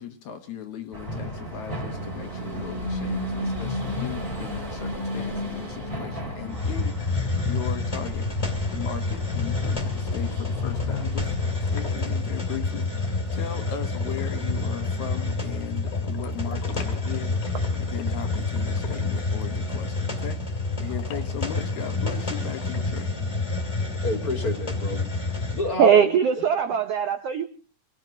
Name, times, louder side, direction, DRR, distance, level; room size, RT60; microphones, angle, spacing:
voice 1, 0.0-8.3 8.7-11.3 11.7-23.1, left 9 dB, 65° left, 6 dB, 2.2 m, -37 dB
sound 1, 0.9-11.8, left 1 dB, 15° right, 2.5 m, -33 dB
Hiss, 6.5-25.7, left 3 dB, 10° left, 2.0 m, -28 dB
sound 2, 9.1-19.9 21.0-22.8, left 6 dB, 90° left, 3.5 m, -44 dB
voice 2, 24.0-26.2, left 2 dB, 30° left, 5 dB, 2.0 m, -30 dB
voice 3, 25.8-27.4, right 8 dB, 75° right, 8 dB, 1.4 m, -20 dB
27.0 x 18.0 x 2.9 m, 0.34 s
omnidirectional pair, 4.0 m